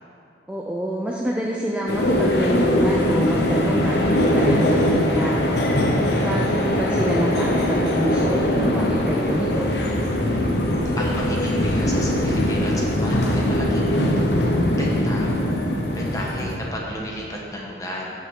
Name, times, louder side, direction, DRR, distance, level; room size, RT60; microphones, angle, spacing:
voice 1, 0.5-5.3 6.1-9.7, equal, 5° right, -3 dB, 0.4 m, -26 dB
sound 1, 1.9-16.6, left 1 dB, 65° left, 0.9 m, -21 dB
voice 2, 10.9-14.0 14.7-15.3 15.9-18.1, equal, 20° left, -3 dB, 1.2 m, -32 dB
13.0 x 5.6 x 3.7 m, 2.6 s
head